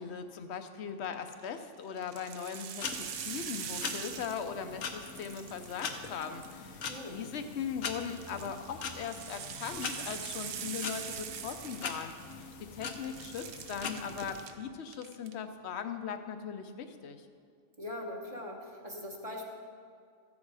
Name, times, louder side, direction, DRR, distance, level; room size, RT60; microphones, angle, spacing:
voice 1, 0.0-17.3, left 7 dB, 60° left, 8 dB, 0.9 m, -39 dB
sound 1, 1.1-1.5 2.0-4.7 5.0-6.8 8.0-12.5 12.8-14.5 14.9-15.3, right 8 dB, 60° right, 0.7 m, -43 dB
sound 2, 2.8-14.5, left 5 dB, 85° left, 1.3 m, -42 dB
voice 2, 6.9-7.2 17.8-19.5, left 1 dB, 30° right, -2 dB, 1.3 m, -41 dB
14.5 x 7.3 x 4.8 m, 2.2 s
omnidirectional pair, 1.3 m